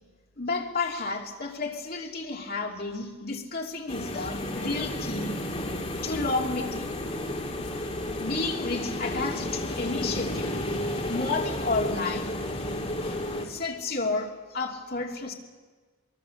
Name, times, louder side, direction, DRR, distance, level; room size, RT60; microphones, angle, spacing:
voice 1, 0.4-5.4 6.0-6.9 8.2-10.7 11.1-12.3 13.4-15.3, left 3 dB, 45° left, 2.8 m, -31 dB
sound 1, 3.9-13.5, left 1 dB, 30° left, 2.8 m, -32 dB
24.0 x 23.5 x 7.2 m
head